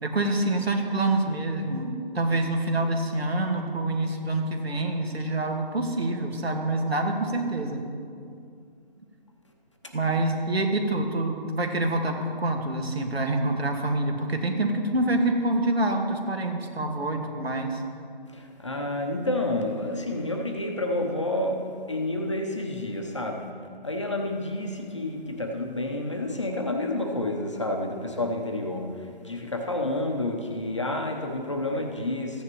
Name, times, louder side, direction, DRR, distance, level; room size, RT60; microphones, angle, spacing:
voice 1, 0.0-7.9 9.9-17.8, right 2 dB, 85° right, 3 dB, 1.7 m, -26 dB
voice 2, 18.3-23.4 23.8-32.4, left 1 dB, 30° left, 2 dB, 0.8 m, -29 dB
15.0 x 9.7 x 3.0 m, 2.3 s
figure-of-eight pair, 170°, 30 cm